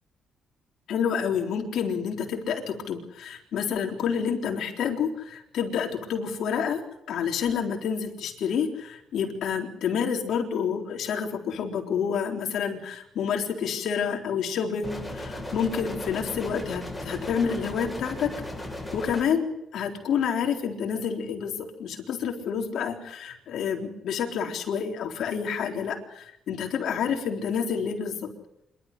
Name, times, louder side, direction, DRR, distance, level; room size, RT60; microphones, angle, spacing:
voice 1, 0.9-18.3 18.9-28.3, left 7 dB, 70° left, 4 dB, 3.9 m, -29 dB
sound 1, 14.8-19.2, left 1 dB, 10° left, 7.7 m, -36 dB
26.5 x 13.0 x 9.8 m, 0.85 s
cardioid pair, 90°, 0 cm